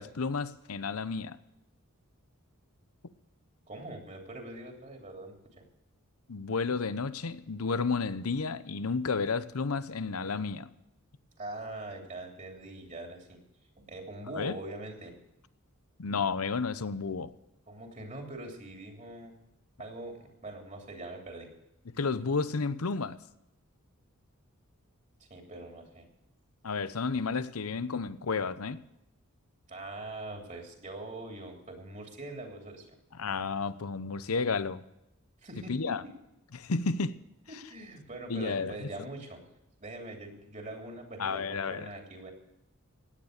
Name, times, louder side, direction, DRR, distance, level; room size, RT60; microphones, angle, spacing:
voice 1, 0.0-1.4 6.3-10.7 14.3-14.6 16.0-17.3 22.0-23.2 26.6-28.8 33.2-34.8 35.7-36.0 36.5-37.2 38.3-38.9 41.2-41.8, left 4 dB, 85° left, 0.8 m, -31 dB
voice 2, 3.7-5.4 11.4-13.4 13.9-15.1 17.7-19.3 19.8-21.5 25.2-26.1 29.7-33.0 35.4-36.1 37.5-39.4 39.8-42.3, right 2 dB, 35° right, 3.1 m, -43 dB
17.0 x 9.8 x 6.6 m
head